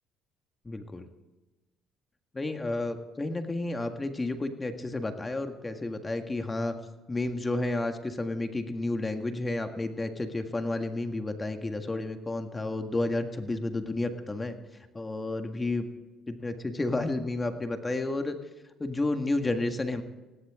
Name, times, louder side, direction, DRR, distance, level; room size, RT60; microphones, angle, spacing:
voice 1, 0.6-1.1 2.3-6.7 7.1-14.6 14.9-15.9 16.3-18.4 18.8-20.0, left 2 dB, 20° left, 6 dB, 1.7 m, -31 dB
18.0 x 17.0 x 3.7 m, 1.2 s
cardioid pair, 95°, 0 cm